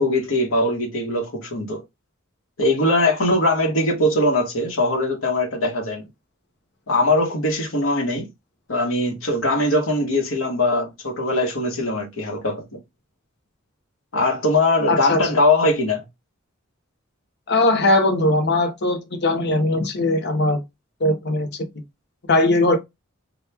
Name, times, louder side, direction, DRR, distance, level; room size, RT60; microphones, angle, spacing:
voice 1, 0.0-1.8 2.6-6.1 6.9-8.3 8.7-12.6 14.1-16.0, left 1 dB, 85° left, 1.1 m, -21 dB
voice 2, 14.9-15.2 17.5-20.6 21.0-21.7 22.3-22.8, left 2 dB, 55° left, 0.7 m, -19 dB
2.9 x 2.3 x 3.3 m
head